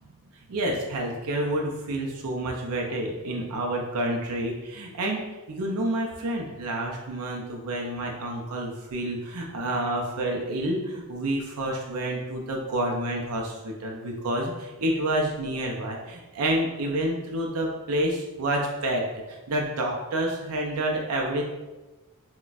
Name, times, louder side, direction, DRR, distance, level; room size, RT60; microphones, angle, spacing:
voice 1, 0.5-19.0 19.3-21.4, right 1 dB, 90° right, 0 dB, 0.5 m, -29 dB
2.3 x 2.2 x 3.9 m, 1.1 s
head